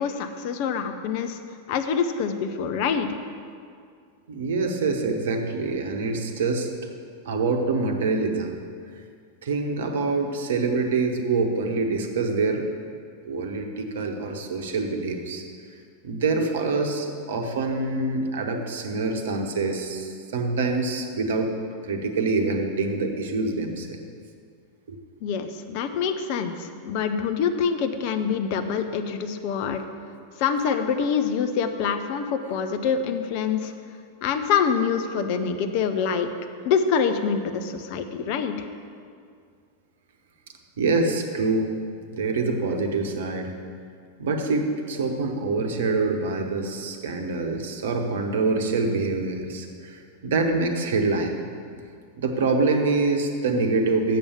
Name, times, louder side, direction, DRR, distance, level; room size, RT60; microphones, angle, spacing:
voice 1, 0.0-1.4 1.7-3.1 25.2-29.8 30.4-33.7 34.2-36.3 36.6-38.7, left 6 dB, 45° left, 7 dB, 0.6 m, -25 dB
voice 2, 4.3-6.7 7.2-8.6 9.4-12.7 13.2-15.4 16.0-21.5 21.8-24.0 24.9-25.0 40.8-41.8 42.1-43.5 44.2-51.4 51.7-51.8 52.2-54.2, right 3 dB, 60° right, 4 dB, 1.0 m, -25 dB
7.6 x 7.0 x 7.1 m, 2.2 s
figure-of-eight pair, 90°, 0 cm